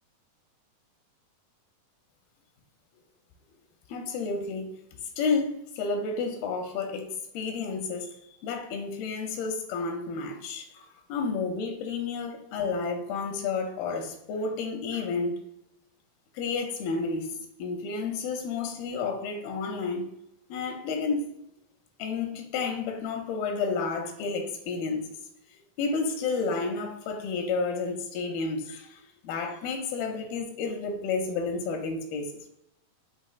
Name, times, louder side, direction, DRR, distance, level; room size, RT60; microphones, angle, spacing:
voice 1, 3.9-4.7 5.2-7.1 7.3-8.2 8.4-15.4 16.3-17.3 17.6-20.1 20.5-21.3 22.0-25.0 25.8-32.5, left 4 dB, 85° left, 2.4 m, -31 dB
6.5 x 3.1 x 2.3 m
omnidirectional pair, 4.2 m